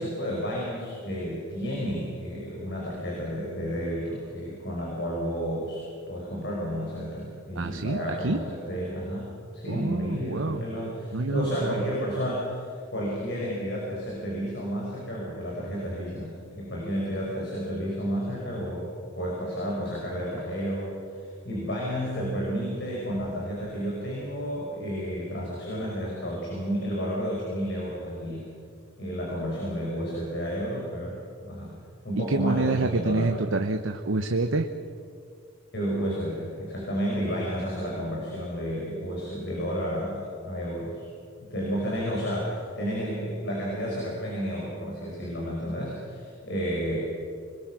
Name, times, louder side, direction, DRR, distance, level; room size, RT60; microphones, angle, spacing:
voice 1, 0.0-5.8 6.1-18.9 19.2-28.5 29.0-31.2 31.4-31.7 32.0-33.3 35.7-41.0 41.4-47.0, equal, 55° left, -4 dB, 5.4 m, -31 dB
voice 2, 7.5-8.5 9.7-10.7 11.1-11.9 32.2-34.7, right 2 dB, 75° right, 6 dB, 0.9 m, -27 dB
25.5 x 21.0 x 6.2 m, 2.3 s
head